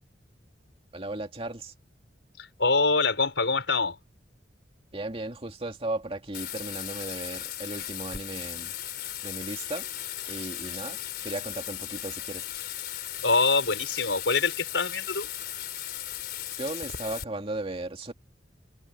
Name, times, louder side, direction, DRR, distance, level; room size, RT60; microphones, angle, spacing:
voice 1, 0.9-1.7 4.9-8.7 9.2-9.9 10.3-12.4 16.6-18.1, right 2 dB, 30° right, 2.5 m, -36 dB
voice 2, 2.4-4.0 13.2-15.3, left 4 dB, 75° left, 4.6 m, -25 dB
Bathtub (filling or washing), 6.3-17.2, left 12 dB, 55° left, 4.5 m, -37 dB
head